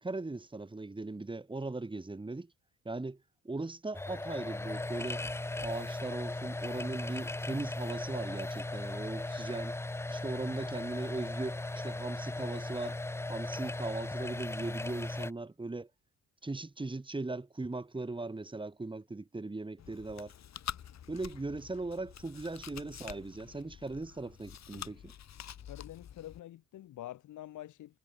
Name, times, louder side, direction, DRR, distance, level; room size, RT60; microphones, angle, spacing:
voice 1, 0.0-2.5 2.8-5.2 5.6-9.8 10.1-13.0 13.3-15.9 16.4-20.3 21.1-25.1, right 2 dB, 15° right, 2.8 m, -39 dB
sound 1, 3.9-15.3, left 2 dB, 10° left, 0.7 m, -37 dB
Chewing mastication, 19.8-26.4, left 9 dB, 60° left, 5.2 m, -47 dB
voice 2, 25.7-28.0, left 13 dB, 80° left, 3.7 m, -46 dB
cardioid pair, 90°, 30 cm